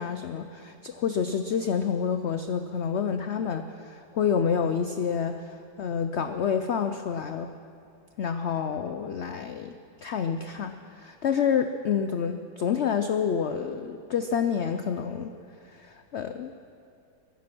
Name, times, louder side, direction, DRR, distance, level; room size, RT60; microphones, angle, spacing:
voice 1, 0.0-7.5 8.2-9.7 10.0-15.3 15.6-16.5, left 7 dB, 85° left, 8 dB, 0.6 m, -28 dB
22.0 x 9.7 x 6.1 m, 2.5 s
omnidirectional pair, 1.8 m